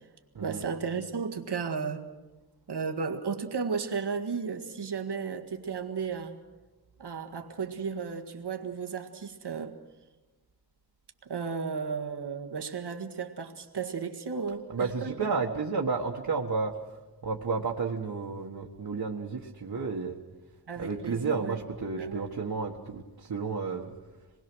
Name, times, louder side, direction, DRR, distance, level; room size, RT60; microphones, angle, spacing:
voice 1, 0.4-2.1 2.7-6.4 7.0-9.8 11.3-15.3 20.7-21.6 21.9-22.3, right 5 dB, 85° right, 4 dB, 1.8 m, -34 dB
voice 2, 14.7-16.8 17.2-20.2 20.8-23.9, right 4 dB, 65° right, -1 dB, 1.6 m, -32 dB
26.5 x 20.5 x 6.3 m, 1.2 s
wide cardioid pair, 100°, 40 cm